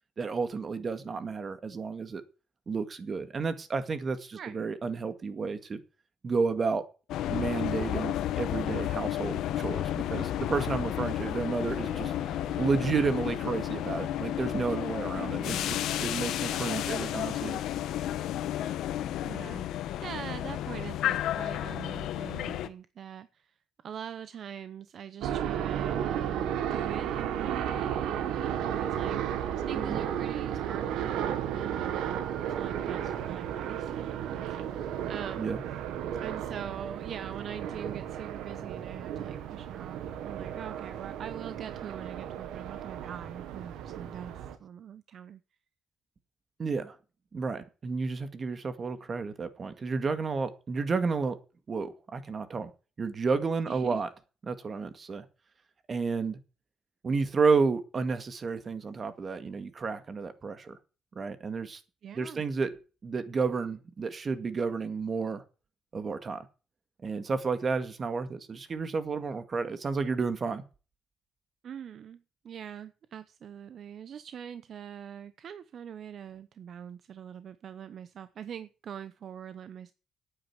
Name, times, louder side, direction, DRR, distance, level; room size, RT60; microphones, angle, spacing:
voice 1, 0.2-2.2 2.7-5.8 6.2-6.8 7.3-12.1 12.6-17.6 29.8-30.0 35.4-35.6 46.6-47.0 47.3-51.4 51.7-52.7 53.0-54.1 54.4-55.2 55.9-56.4 57.0-60.8 61.2-61.8 62.1-62.7 63.0-65.4 65.9-66.5 67.0-70.6, right 4 dB, 40° right, 10 dB, 2.0 m, -31 dB
voice 2, 4.3-4.7 15.1-15.9 19.2-23.5 23.8-34.8 35.1-35.6 36.2-45.4 53.7-54.0 62.0-62.4 71.6-79.9, right 8 dB, 60° right, 14 dB, 0.8 m, -43 dB
sound 1, 7.1-22.7, left 12 dB, 85° left, 1.1 m, -32 dB
Bowed string instrument, 11.1-16.0, right 3 dB, 25° right, 2.7 m, -50 dB
sound 2, 25.2-44.6, right 9 dB, 90° right, 1.5 m, -34 dB
9.5 x 9.1 x 8.2 m, 0.35 s
cardioid pair, 90°, 0 cm